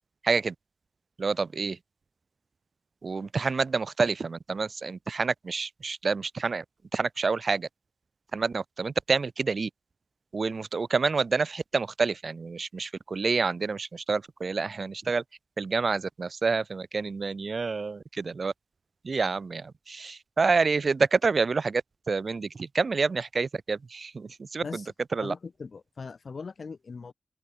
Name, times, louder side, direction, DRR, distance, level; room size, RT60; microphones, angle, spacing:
voice 1, 0.2-0.5 1.2-1.8 3.0-6.6 6.9-7.7 8.3-9.7 10.3-15.2 15.6-18.5 19.0-21.8 22.1-24.8 25.1-25.3, right 4 dB, 60° right, 0.5 m, -28 dB
voice 2, 25.2-27.1, left 4 dB, 65° left, 2.8 m, -40 dB
open air
wide cardioid pair, 80°, 0 cm